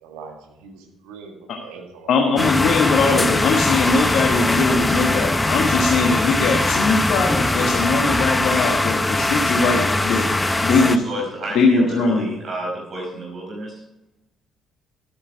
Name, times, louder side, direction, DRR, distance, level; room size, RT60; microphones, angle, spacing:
voice 1, 0.0-2.1, right 5 dB, 75° right, 3 dB, 1.8 m, -41 dB
voice 2, 2.1-10.3 10.6-11.0 11.5-12.3, left 4 dB, 65° left, 1 dB, 1.2 m, -20 dB
sound 1, 2.4-11.0, left 2 dB, 15° left, 0.9 m, -21 dB
voice 3, 11.0-13.8, equal, 45° right, -2 dB, 4.8 m, -30 dB
12.5 x 8.6 x 4.6 m, 0.90 s
hypercardioid pair, 50°, 0 cm